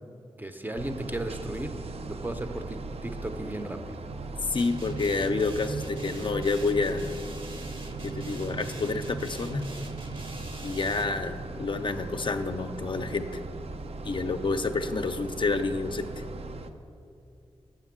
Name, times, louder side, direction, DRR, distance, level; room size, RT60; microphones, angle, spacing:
voice 1, 0.4-1.7 2.1-4.1, right 1 dB, 15° right, 7 dB, 0.5 m, -35 dB
sound 1, 0.7-16.7, right 3 dB, 75° right, 0.5 m, -39 dB
voice 2, 4.5-7.1 8.0-9.7 10.6-13.3 14.0-16.2, left 3 dB, 50° left, 8 dB, 0.4 m, -29 dB
sound 2, 4.6-11.2, right 3 dB, 55° right, 0.8 m, -40 dB
7.3 x 5.9 x 7.3 m, 2.6 s
wide cardioid pair, 95°, 11 cm